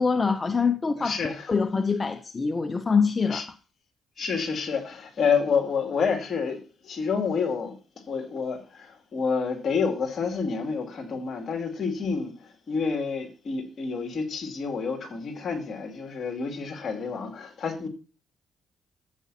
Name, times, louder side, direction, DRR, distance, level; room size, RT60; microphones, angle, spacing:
voice 1, 0.0-3.4, left 5 dB, 30° left, 0.6 m, -25 dB
voice 2, 1.0-1.5 3.3-3.4 4.2-7.8 8.1-17.9, left 5 dB, 55° left, 2.5 m, -29 dB
13.5 x 8.3 x 2.8 m
cardioid pair, 90°, 0 cm